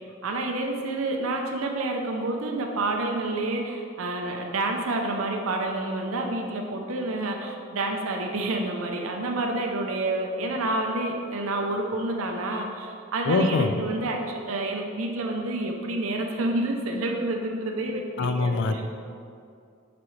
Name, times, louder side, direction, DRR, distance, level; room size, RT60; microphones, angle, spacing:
voice 1, 0.2-14.2 14.5-18.8, right 2 dB, 80° right, 2 dB, 0.6 m, -29 dB
voice 2, 13.3-13.7 18.2-18.8, left 3 dB, 60° left, 7 dB, 0.4 m, -23 dB
6.1 x 5.9 x 3.2 m, 2.4 s
head